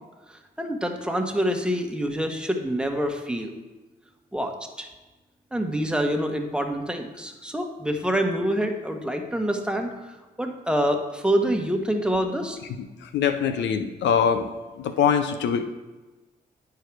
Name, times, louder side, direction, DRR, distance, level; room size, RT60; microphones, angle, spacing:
voice 1, 0.3-3.5 4.3-4.9 5.5-9.9 10.4-12.6, equal, 5° right, 3 dB, 1.2 m, -26 dB
voice 2, 13.0-14.5 14.8-15.6, left 7 dB, 90° left, 8 dB, 0.6 m, -23 dB
10.0 x 4.7 x 4.7 m, 1.2 s
cardioid pair, 60°, 18 cm